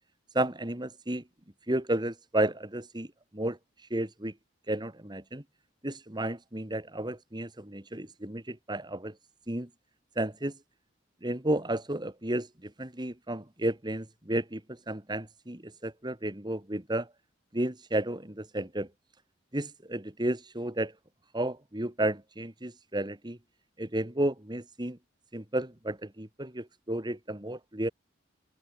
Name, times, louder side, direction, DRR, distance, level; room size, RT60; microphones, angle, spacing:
voice 1, 0.3-1.2 1.7-3.1 3.3-4.3 4.7-5.4 5.8-9.1 9.5-9.7 10.2-10.6 11.2-17.1 17.5-18.9 19.5-20.9 21.3-23.4 23.8-25.0 25.3-27.9, right 1 dB, 25° right, 2.0 m, -32 dB
open air
head